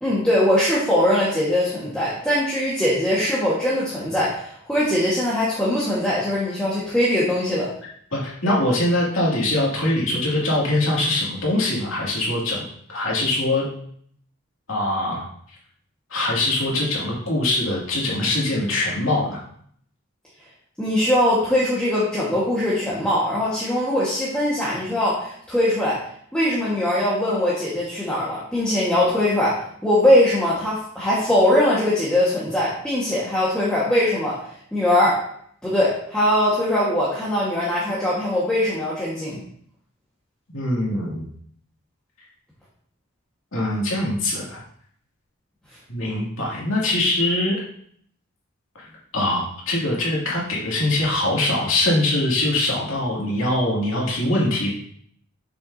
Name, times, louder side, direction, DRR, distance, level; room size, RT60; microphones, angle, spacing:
voice 1, 0.0-7.7 20.8-26.0 26.3-34.4 34.7-35.2 35.6-39.4, left 1 dB, 5° left, -9 dB, 1.4 m, -21 dB
voice 2, 8.1-12.6 12.9-13.6 14.7-15.2 16.1-19.4 40.5-41.3 43.5-44.6 45.9-47.6 49.1-54.8, left 1 dB, 70° left, -5 dB, 2.3 m, -22 dB
6.9 x 6.0 x 2.7 m, 0.64 s
head